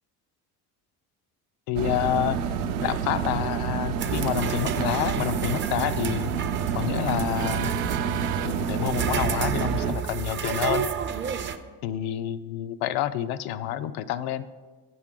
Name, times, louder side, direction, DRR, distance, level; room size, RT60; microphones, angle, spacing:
voice 1, 1.7-2.4 2.8-6.3 6.7-7.7 8.4-10.9 11.8-14.5, left 11 dB, 75° left, 13 dB, 0.5 m, -28 dB
sound 1, 1.8-9.9, right 7 dB, 80° right, 0.6 m, -28 dB
sound 2, 4.0-11.6, right 7 dB, 30° right, 0.4 m, -31 dB
8.2 x 6.1 x 3.7 m, 1.4 s
cardioid pair, 105°, 38 cm